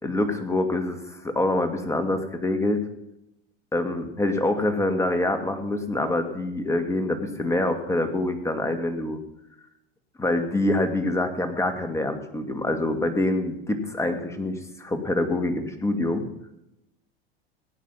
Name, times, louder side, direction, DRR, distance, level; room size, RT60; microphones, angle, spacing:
voice 1, 0.0-2.8 3.7-9.2 10.2-16.3, left 2 dB, 10° left, 5 dB, 2.3 m, -25 dB
17.5 x 10.5 x 5.7 m, 0.84 s
hypercardioid pair, 105°, 31 cm